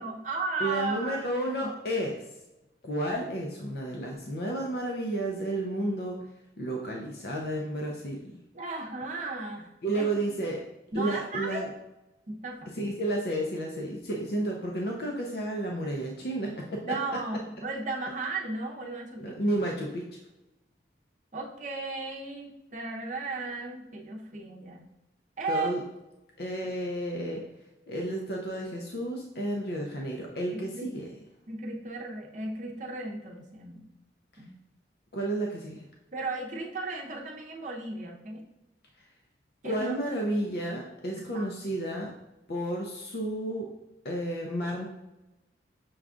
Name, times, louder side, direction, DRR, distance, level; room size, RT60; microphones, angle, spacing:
voice 1, 0.0-1.7 8.5-10.1 10.9-11.7 12.3-12.7 16.8-19.4 21.3-24.9 25.4-25.7 30.5-30.9 31.5-33.9 34.4-34.5 36.1-38.4 39.6-40.0 41.3-41.5, right 3 dB, 40° right, 0 dB, 0.7 m, -35 dB
voice 2, 0.6-2.2 2.8-6.2 6.6-8.2 9.8-10.6 10.9-11.7 12.8-17.0 19.2-20.0 25.5-25.8 26.4-27.5 27.9-31.0 35.1-35.9 39.6-42.1 42.5-43.7 44.0-44.9, right 1 dB, 60° left, 0 dB, 0.6 m, -31 dB
6.2 x 2.4 x 3.6 m, 0.95 s
head